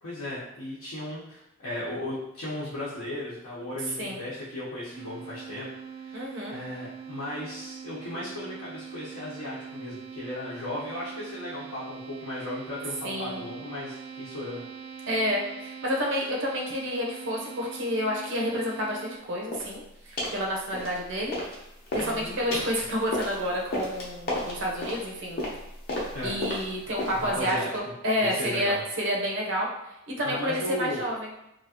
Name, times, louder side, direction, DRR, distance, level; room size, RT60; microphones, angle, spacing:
voice 1, 0.0-5.7 6.0-14.6 22.0-22.6 26.1-26.3 27.2-27.7 28.2-28.8 30.2-31.0, left 1 dB, 85° left, -9 dB, 0.8 m, -36 dB
sound 1, 4.9-19.2, right 7 dB, 30° right, 0.3 m, -42 dB
voice 2, 6.1-6.6 13.0-13.5 15.1-21.3 21.9-25.4 26.2-29.7 30.1-31.3, equal, 60° right, -2 dB, 0.7 m, -29 dB
sound 2, 19.5-19.7 20.2-20.4 20.7-21.6 21.8-27.4, left 1 dB, 45° left, 0.7 m, -33 dB
2.9 x 2.4 x 2.8 m, 0.85 s
head